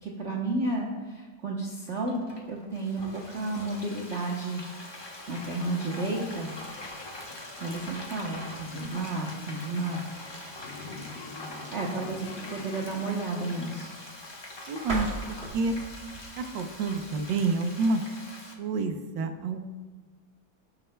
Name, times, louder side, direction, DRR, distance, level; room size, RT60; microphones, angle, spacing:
voice 1, 0.0-4.6 4.9-6.5 7.6-10.6 11.3-13.9, right 2 dB, 50° right, -1 dB, 0.9 m, -32 dB
Frying (food), 1.9-18.5, left 1 dB, 45° left, 0.3 m, -43 dB
sound 1, 5.3-13.3, left 4 dB, 65° left, 1.1 m, -47 dB
voice 2, 14.7-15.7 16.4-18.0 18.6-19.6, right 3 dB, 70° right, 7 dB, 1.4 m, -28 dB
sound 2, 14.9-17.6, right 2 dB, 30° right, 2.4 m, -38 dB
17.5 x 6.6 x 2.2 m, 1.3 s
omnidirectional pair, 2.1 m